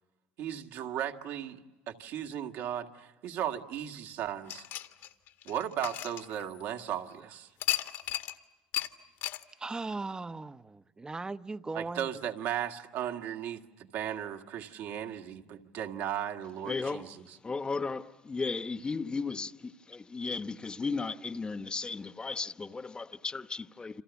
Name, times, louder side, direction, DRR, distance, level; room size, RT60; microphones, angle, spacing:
voice 1, 0.4-1.6 1.9-4.6 5.5-7.5 11.7-17.2, right 10 dB, 70° right, 2.0 m, -36 dB
sound 1, 4.5-6.9 7.6-8.4 8.7-8.9 9.2-9.4, left 13 dB, 70° left, 1.7 m, -35 dB
voice 2, 9.6-12.1, right 3 dB, 20° right, 0.8 m, -38 dB
voice 3, 16.7-24.0, left 4 dB, 20° left, 1.1 m, -35 dB
28.5 x 27.0 x 7.1 m
supercardioid pair, 85°, 4 cm